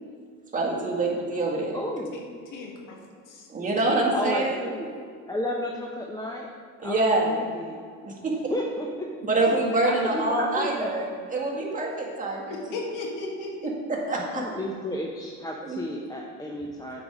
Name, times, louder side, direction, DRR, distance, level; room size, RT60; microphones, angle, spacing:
voice 1, 0.5-1.8 3.5-4.6 6.8-7.3 8.0-8.5 9.3-12.6 13.6-14.4 15.6-15.8, right 2 dB, 25° right, -3 dB, 1.9 m, -26 dB
voice 2, 1.7-2.1 4.1-4.9 5.3-6.5 6.8-7.8 8.3-9.1 9.8-10.9 14.1-17.0, left 1 dB, 10° left, 0 dB, 0.7 m, -32 dB
voice 3, 2.5-3.0 3.3-3.5 9.4-9.5 12.5-13.7, left 3 dB, 75° left, 0 dB, 1.7 m, -35 dB
8.1 x 4.7 x 5.1 m, 2.2 s
cardioid pair, 105°, 32 cm